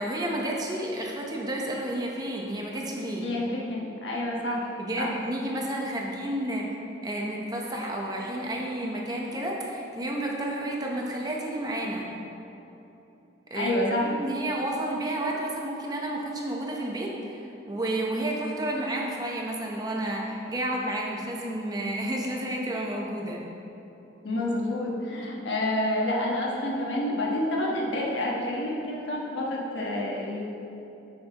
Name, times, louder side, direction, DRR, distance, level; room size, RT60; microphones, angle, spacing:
voice 1, 0.0-3.3 4.8-6.7 7.0-12.1 13.5-13.7 14.1-23.4, right 1 dB, 20° right, -1 dB, 0.8 m, -31 dB
voice 2, 3.2-5.1 6.0-6.2 13.5-14.1 24.2-30.4, left 1 dB, 85° left, -3 dB, 1.3 m, -28 dB
9.6 x 6.5 x 2.9 m, 2.9 s
head